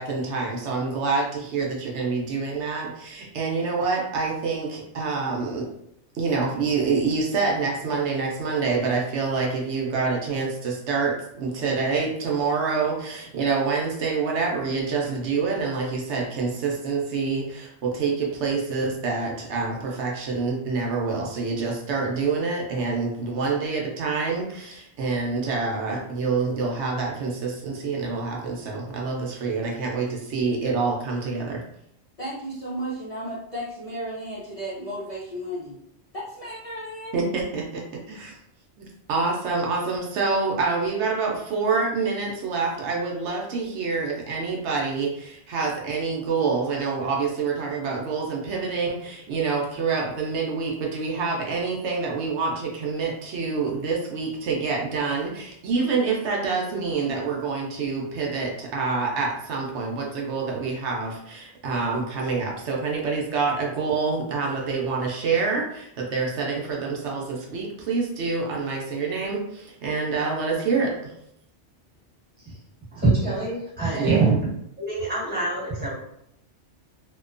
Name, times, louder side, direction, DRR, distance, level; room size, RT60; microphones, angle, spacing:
voice 1, 0.0-5.7 6.1-31.6 37.1-38.4 38.8-71.1 74.0-74.3, right 4 dB, 75° right, -1 dB, 0.9 m, -27 dB
voice 2, 32.2-35.8 36.1-37.2, equal, 40° left, -9 dB, 0.6 m, -34 dB
voice 3, 72.9-74.4 74.8-75.9, right 3 dB, 10° right, -8 dB, 1.2 m, -24 dB
2.8 x 2.1 x 2.4 m, 0.76 s
omnidirectional pair, 1.2 m